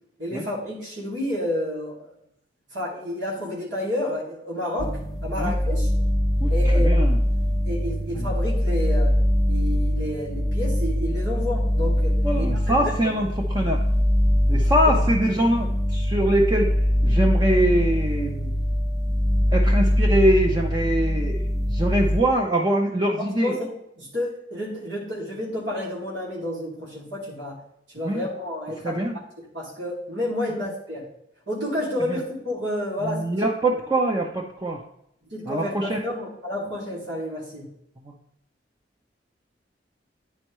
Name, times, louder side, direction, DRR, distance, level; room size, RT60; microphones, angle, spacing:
voice 1, 0.2-2.1 2.7-4.9 5.2-5.9 6.5-7.1 7.6-9.2 9.5-12.5 12.8-12.9 14.8-14.9 23.2-23.7 24.0-27.6 27.9-29.0 29.5-31.1 31.5-33.3 35.3-37.7, left 1 dB, 85° right, -6 dB, 2.4 m, -30 dB
sound 1, 4.8-22.2, equal, ahead, 0.9 m, -22 dB
voice 2, 6.4-7.2 8.2-8.3 12.2-13.3 13.5-13.8 14.5-16.7 17.0-18.5 19.5-23.5 28.0-28.3 28.8-29.2 32.1-32.2 33.0-34.8 35.5-36.0 38.0-38.1, right 1 dB, 25° right, 0 dB, 0.6 m, -23 dB
9.9 x 4.4 x 3.1 m, 0.76 s
head